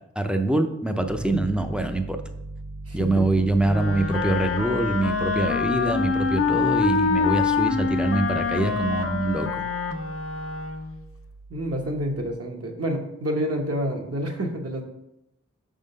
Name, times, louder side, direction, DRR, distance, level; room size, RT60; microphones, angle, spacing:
voice 1, 0.2-2.2 2.9-9.6, right 2 dB, 5° right, 5 dB, 0.6 m, -24 dB
Piano, 1.0-12.3, right 2 dB, 85° right, 0.7 m, -40 dB
voice 2, 2.9-3.2 11.5-14.8, equal, 50° right, 2 dB, 1.2 m, -28 dB
Wind instrument woodwind instrument, 3.6-11.0, left 5 dB, 45° left, 0.6 m, -25 dB
5.7 x 3.7 x 5.4 m, 0.83 s
wide cardioid pair, 65°, 30 cm